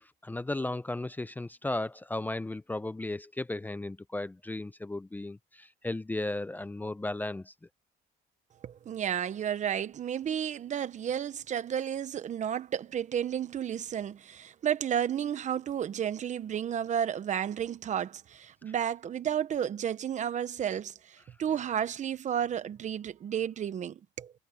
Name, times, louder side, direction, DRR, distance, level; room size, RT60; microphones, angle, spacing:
voice 1, 0.0-7.5, left 2 dB, 10° left, 0.6 m, -35 dB
voice 2, 8.6-24.3, right 9 dB, 45° right, 1.0 m, -32 dB
cardioid pair, 110°, 17 cm